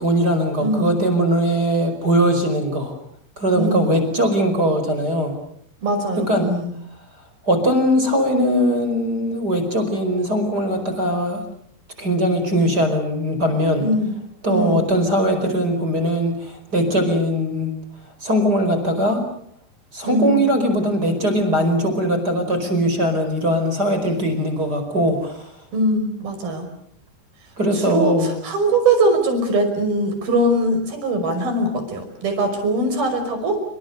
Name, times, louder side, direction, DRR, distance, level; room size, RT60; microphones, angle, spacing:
voice 1, 0.0-2.9 3.4-5.3 6.3-6.5 7.5-11.4 12.0-13.8 14.4-17.7 18.2-19.2 19.9-25.5 27.6-28.3, equal, 20° right, 7 dB, 4.9 m, -20 dB
voice 2, 0.6-0.9 3.5-3.9 5.8-6.7 13.8-14.1 14.5-14.8 20.0-20.4 25.7-26.7 27.7-33.6, right 1 dB, 50° right, 6 dB, 7.2 m, -21 dB
28.5 x 26.5 x 6.8 m, 0.67 s
omnidirectional pair, 5.5 m